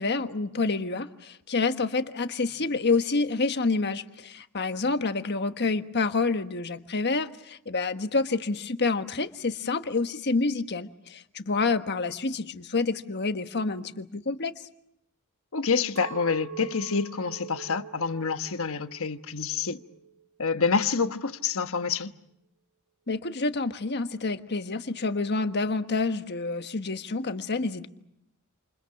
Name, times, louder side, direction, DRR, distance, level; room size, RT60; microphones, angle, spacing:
voice 1, 0.0-14.5 23.1-27.9, left 3 dB, 50° left, 1.4 m, -28 dB
voice 2, 15.5-19.8 20.4-22.1, left 5 dB, 65° left, 1.2 m, -27 dB
Chink clink, 16.0-20.3 20.7-21.3, right 8 dB, 55° right, 1.3 m, -44 dB
29.0 x 28.0 x 5.9 m
head